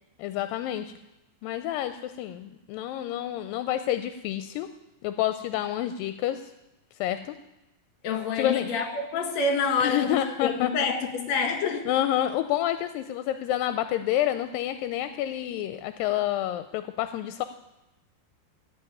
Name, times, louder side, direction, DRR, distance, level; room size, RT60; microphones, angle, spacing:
voice 1, 0.2-0.9 1.4-4.7 5.0-6.5 7.0-7.4 8.4-8.7 9.8-10.7 11.9-17.4, left 12 dB, 85° left, 11 dB, 2.3 m, -28 dB
voice 2, 8.0-11.9, left 5 dB, 60° left, 5 dB, 2.6 m, -27 dB
14.5 x 5.5 x 9.3 m, 0.93 s
omnidirectional pair, 4.0 m